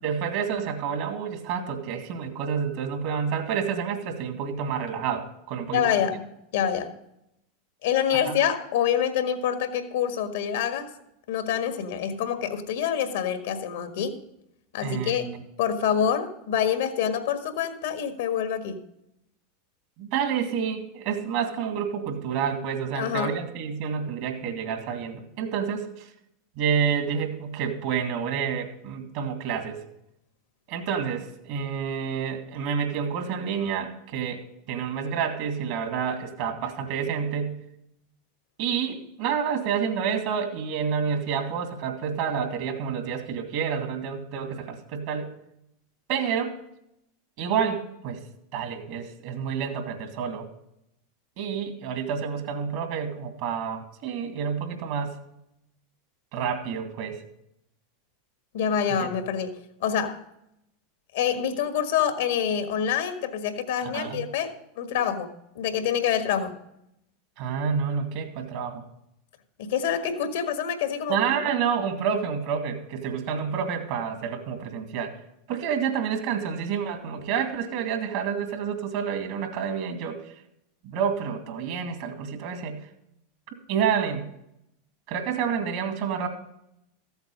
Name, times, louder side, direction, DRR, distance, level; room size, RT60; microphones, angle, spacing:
voice 1, 0.0-6.0 8.1-8.3 14.8-15.4 20.0-26.1 26.6-29.8 30.7-34.4 34.7-37.6 38.6-45.3 46.1-46.5 47.4-48.2 48.5-50.5 51.4-55.2 56.3-57.2 58.9-59.1 63.8-64.3 67.4-68.8 71.1-75.1 75.5-80.3 80.8-82.9 83.7-84.3 85.1-86.3, right 7 dB, 60° right, 6 dB, 2.1 m, -29 dB
voice 2, 5.7-6.2 6.5-6.9 7.8-10.9 11.3-14.2 14.7-15.3 15.6-18.8 22.9-23.3 58.5-60.2 61.1-65.3 65.5-66.5 69.6-71.2, left 8 dB, 70° left, 8 dB, 1.5 m, -26 dB
14.0 x 8.0 x 5.4 m, 0.82 s
hypercardioid pair, 95°, 0 cm